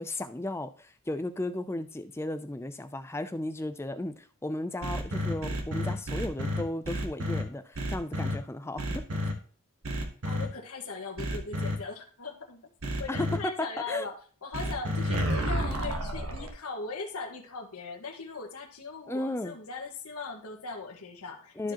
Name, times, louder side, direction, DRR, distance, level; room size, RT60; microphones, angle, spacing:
voice 1, 0.0-9.0 13.1-14.1 19.1-19.6 21.6-21.7, left 1 dB, 10° left, 10 dB, 0.4 m, -35 dB
sound 1, 4.8-7.4 7.7-8.3 8.8-9.3 9.8-10.5 11.2-11.7 12.8-13.4 14.5-16.5, equal, 75° right, 1.2 m, -30 dB
voice 2, 10.2-12.6 13.0-14.1 14.4-21.7, left 4 dB, 85° left, 1 dB, 1.6 m, -39 dB
13.0 x 4.8 x 2.9 m, 0.43 s
head